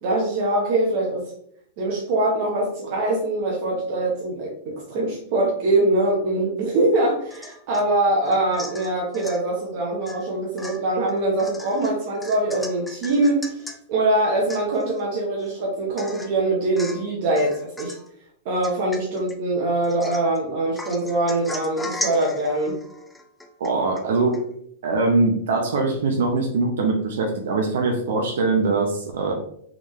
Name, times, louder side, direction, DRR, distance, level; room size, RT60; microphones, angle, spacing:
voice 1, 0.0-1.3 1.8-13.6 13.9-18.0 18.4-22.8, right 2 dB, 45° right, -2 dB, 1.0 m, -23 dB
Domestic sounds home sounds / Chink clink / Drip, 7.3-7.9 8.3-9.4 10.1-10.3 10.6-13.8 14.2-14.3 14.5-15.0 15.4-15.5 16.0-16.4 16.8-17.1 17.4-18.1 18.6-19.4 19.8-20.4 20.8-24.1 24.3-24.4, left 1 dB, 5° left, 0.4 m, -37 dB
voice 2, 23.6-24.4 24.8-29.3, right 3 dB, 80° right, 1 dB, 0.8 m, -22 dB
3.7 x 3.6 x 3.1 m, 0.67 s
supercardioid pair, 165°, 0 cm